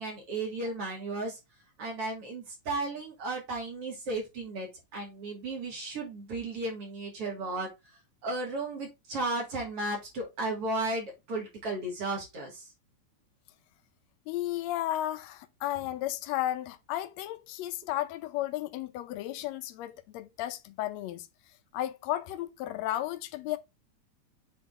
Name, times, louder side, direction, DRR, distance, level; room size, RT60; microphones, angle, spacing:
voice 1, 0.0-1.4 1.8-7.7 8.2-12.7, right 2 dB, 50° right, 3.2 m, -34 dB
voice 2, 14.3-21.3 21.7-23.6, left 14 dB, 75° left, 1.8 m, -34 dB
7.7 x 3.8 x 3.7 m
omnidirectional pair, 3.5 m